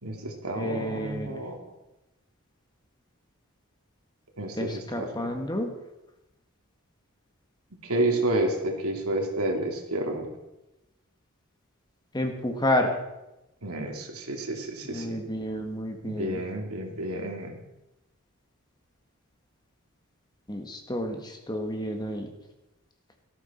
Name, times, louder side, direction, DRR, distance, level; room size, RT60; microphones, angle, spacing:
voice 1, 0.0-1.6 4.4-5.1 7.8-10.3 13.6-15.2 16.0-17.6, right 1 dB, 80° right, 2 dB, 2.8 m, -30 dB
voice 2, 0.5-1.4 4.6-5.7 12.1-13.0 14.8-16.4 20.5-22.3, left 1 dB, 20° left, 4 dB, 1.5 m, -30 dB
18.0 x 13.5 x 4.3 m, 0.96 s
head